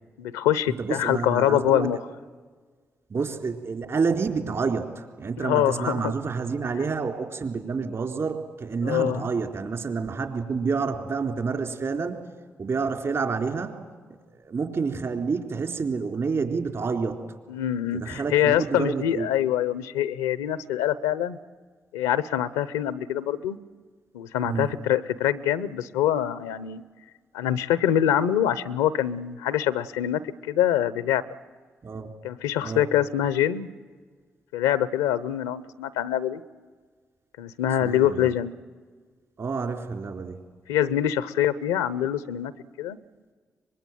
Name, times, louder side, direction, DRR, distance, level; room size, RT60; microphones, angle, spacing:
voice 1, 0.2-2.0 5.4-6.1 8.8-9.2 17.5-21.4 21.9-23.6 24.1-26.8 27.3-30.2 30.5-31.2 32.2-33.7 34.5-36.4 37.4-38.5 40.7-42.5 42.8-43.0, left 11 dB, 90° left, 17 dB, 0.8 m, -24 dB
voice 2, 0.8-1.9 3.1-12.3 12.6-13.7 14.3-17.2 17.9-19.3 24.4-24.7 31.8-32.1 32.6-32.9 37.8-38.3 39.4-40.4, right 5 dB, 55° right, 5 dB, 3.9 m, -28 dB
24.0 x 21.0 x 9.2 m, 1.5 s
hypercardioid pair, 40°, 6 cm